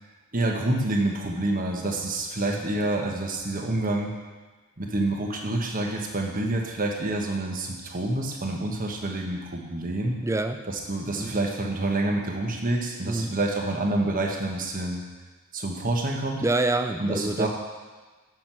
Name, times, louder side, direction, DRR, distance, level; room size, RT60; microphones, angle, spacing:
voice 1, 0.3-4.1 4.8-10.2 10.7-15.0 15.5-16.4 17.0-17.5, right 2 dB, 40° right, 0 dB, 1.2 m, -27 dB
voice 2, 10.2-10.6 11.2-11.3 13.0-13.3 16.4-17.5, right 2 dB, 15° right, 7 dB, 0.4 m, -26 dB
7.3 x 6.0 x 6.0 m, 1.3 s
head